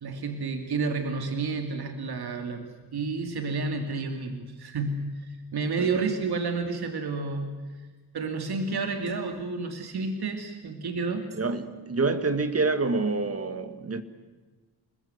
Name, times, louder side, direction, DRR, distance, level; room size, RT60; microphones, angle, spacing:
voice 1, 0.0-7.6 8.1-11.2, right 4 dB, 65° right, 2.6 m, -30 dB
voice 2, 11.4-14.0, right 3 dB, 35° right, 1.9 m, -27 dB
28.5 x 20.5 x 8.1 m
wide cardioid pair, 130°, 40 cm